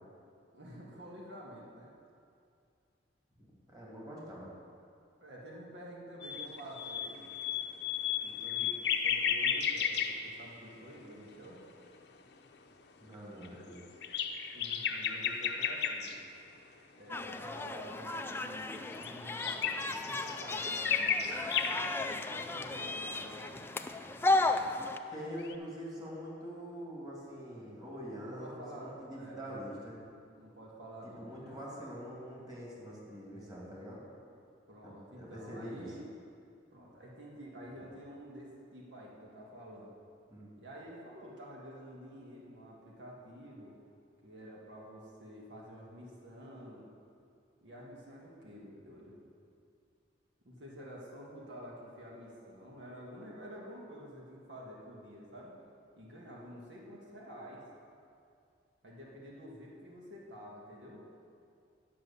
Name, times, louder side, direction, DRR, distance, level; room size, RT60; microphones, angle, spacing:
voice 1, 0.5-1.9 5.2-7.3 8.2-8.7 9.0-11.6 14.5-16.1 16.9-23.7 28.2-29.5 30.4-31.8 34.7-36.1 36.7-39.9 40.6-43.7 44.2-46.9 47.6-49.2 50.4-55.5 56.0-57.6 58.8-61.0, equal, 80° right, -4 dB, 1.9 m, -49 dB
voice 2, 3.4-4.5 13.0-13.8 25.1-30.0 31.0-34.0 35.1-35.9 40.3-40.5, equal, 20° right, -5 dB, 2.4 m, -44 dB
sound 1, 6.2-11.0 11.3-11.8 12.5-12.6 13.4-16.2 18.5-22.1 25.4-25.5, left 7 dB, 65° left, 0.7 m, -34 dB
sound 2, 17.1-25.0, left 2 dB, 15° left, 0.4 m, -34 dB
10.5 x 6.1 x 7.0 m, 2.4 s
head